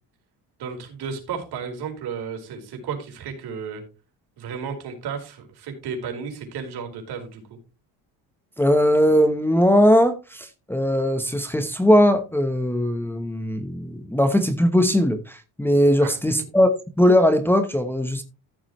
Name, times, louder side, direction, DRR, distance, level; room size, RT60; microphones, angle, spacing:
voice 1, 0.6-3.8 4.4-7.6 16.0-16.2, right 6 dB, 65° right, 4.5 m, -33 dB
voice 2, 8.6-16.7 17.0-18.2, equal, 5° left, 1.0 m, -19 dB
14.0 x 7.3 x 3.1 m
cardioid pair, 115°, 41 cm